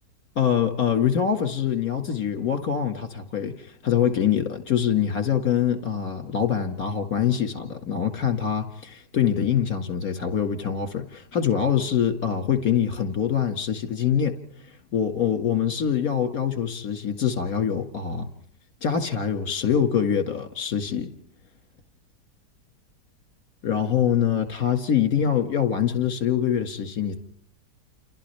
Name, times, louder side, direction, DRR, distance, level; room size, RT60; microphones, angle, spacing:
voice 1, 0.4-14.4 14.9-18.3 18.8-21.1 23.6-27.2, left 8 dB, 55° left, 2.5 m, -24 dB
29.5 x 28.5 x 3.4 m
omnidirectional pair, 1.9 m